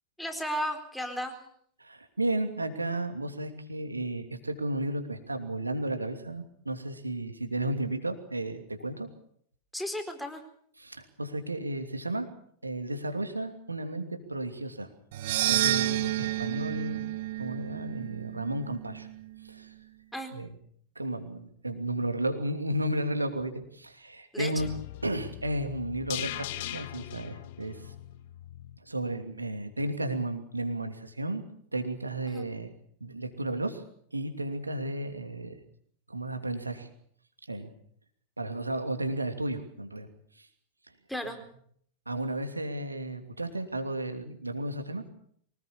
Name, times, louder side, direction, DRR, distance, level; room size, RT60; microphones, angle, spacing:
voice 1, 0.2-1.4 9.7-10.4 20.1-20.3 24.3-24.7 32.3-32.5 41.1-41.4, equal, ahead, 5 dB, 4.3 m, -34 dB
voice 2, 1.8-9.1 10.8-12.3 12.6-14.9 15.5-17.0 17.4-19.1 19.4-19.7 20.3-20.5 20.9-24.7 25.0-27.9 28.8-31.4 31.7-32.7 33.0-33.8 34.1-35.6 36.1-36.9 37.5-37.7 38.4-40.1 40.3-40.5 42.1-45.0, right 1 dB, 80° right, 6 dB, 2.8 m, -33 dB
sound 1, 15.1-19.4, right 15 dB, 55° right, 0.9 m, -30 dB
sound 2, 24.6-28.8 29.1-29.2, left 14 dB, 50° left, 1.0 m, -40 dB
24.5 x 19.5 x 7.1 m, 0.65 s
figure-of-eight pair, 90°, 0 cm